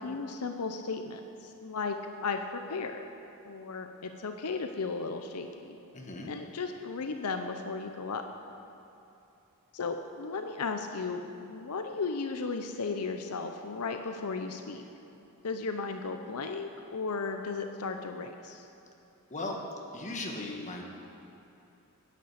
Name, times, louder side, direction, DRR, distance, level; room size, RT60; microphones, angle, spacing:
voice 1, 0.0-3.0 3.4-5.8 6.3-8.3 9.7-14.8 15.4-18.7, left 4 dB, 85° left, 6 dB, 0.7 m, -35 dB
voice 2, 5.9-6.3 19.3-19.6 19.9-20.8, left 2 dB, 35° left, 0 dB, 1.5 m, -37 dB
10.5 x 8.5 x 8.0 m, 2.9 s
head